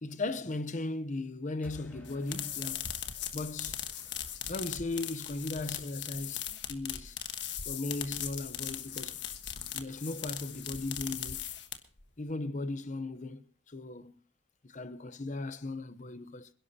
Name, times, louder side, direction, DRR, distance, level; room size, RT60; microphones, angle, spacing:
voice 1, 0.0-2.9 3.3-3.8 4.5-7.2 7.7-9.2 9.7-11.4 12.2-14.1 14.6-16.5, left 2 dB, 40° left, 0.8 m, -37 dB
sound 1, 1.6-4.5, left 1 dB, 10° left, 3.8 m, -55 dB
sound 2, 2.0-12.0, left 10 dB, 60° left, 1.4 m, -39 dB
27.0 x 11.5 x 2.8 m
head